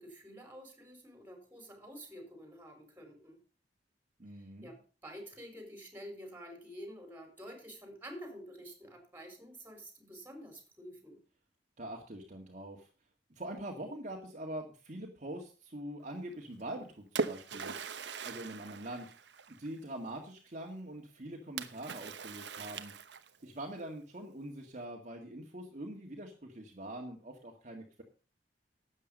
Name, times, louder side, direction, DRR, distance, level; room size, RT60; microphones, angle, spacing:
voice 1, 0.0-3.4 4.4-11.2, equal, 10° right, 4 dB, 4.7 m, -49 dB
voice 2, 4.2-4.7 11.8-12.9 13.3-17.7 18.3-19.1 19.5-22.9 23.4-28.0, right 1 dB, 45° right, 1 dB, 1.9 m, -44 dB
Splash splatter, 16.6-19.8 21.6-23.5, right 4 dB, 80° right, 1.0 m, -40 dB
12.5 x 8.4 x 5.3 m, 0.37 s
head